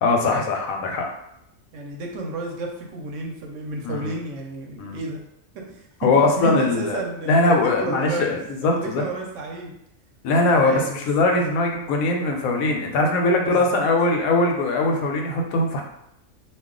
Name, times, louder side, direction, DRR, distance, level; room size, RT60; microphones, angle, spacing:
voice 1, 0.0-1.1 3.8-4.1 4.8-5.0 6.0-9.0 10.2-15.8, left 2 dB, 85° left, 2 dB, 1.0 m, -21 dB
voice 2, 1.7-5.2 5.7-6.1 6.4-9.7 10.4-11.0 13.3-13.8, right 2 dB, 70° right, 1 dB, 0.9 m, -31 dB
2.3 x 2.3 x 3.6 m, 0.78 s
omnidirectional pair, 1.4 m